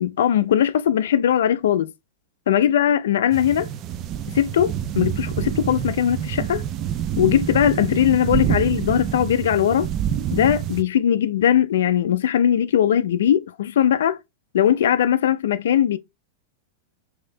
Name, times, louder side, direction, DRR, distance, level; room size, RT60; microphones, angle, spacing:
voice 1, 0.0-1.9 2.5-3.7 4.3-6.6 7.2-9.9 10.3-14.2 14.5-16.0, left 10 dB, 75° left, 0.4 m, -20 dB
sound 1, 3.3-10.8, right 10 dB, 40° right, 0.4 m, -27 dB
3.2 x 2.7 x 3.8 m
hypercardioid pair, 115°, 0 cm